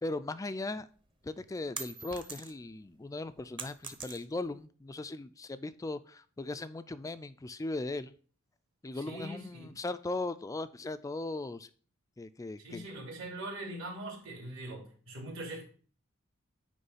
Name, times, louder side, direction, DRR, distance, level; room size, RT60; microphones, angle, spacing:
voice 1, 0.0-0.9 1.2-8.1 8.8-11.7 12.2-12.8, left 2 dB, 15° left, 13 dB, 0.3 m, -38 dB
sound 1, 1.0-2.8 3.1-4.6, right 4 dB, 25° right, 0.8 m, -43 dB
voice 2, 8.9-9.7 12.6-15.6, right 1 dB, 65° right, -1 dB, 3.1 m, -42 dB
9.5 x 3.2 x 5.5 m, 0.42 s
head